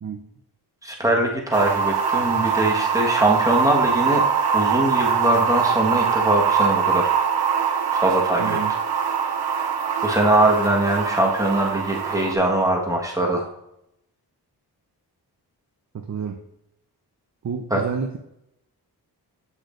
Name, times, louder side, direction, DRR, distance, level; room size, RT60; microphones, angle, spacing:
voice 1, 0.8-4.2 4.5-7.1 7.9-8.6 10.0-13.5 17.7-17.8, right 1 dB, 10° right, -1 dB, 1.4 m, -22 dB
sound 1, 1.5-12.3, right 6 dB, 70° right, 0.9 m, -23 dB
voice 2, 8.4-8.7 15.9-16.4 17.4-18.2, right 6 dB, 45° right, 4 dB, 0.7 m, -29 dB
8.3 x 6.2 x 2.5 m, 0.83 s
wide cardioid pair, 95°, 39 cm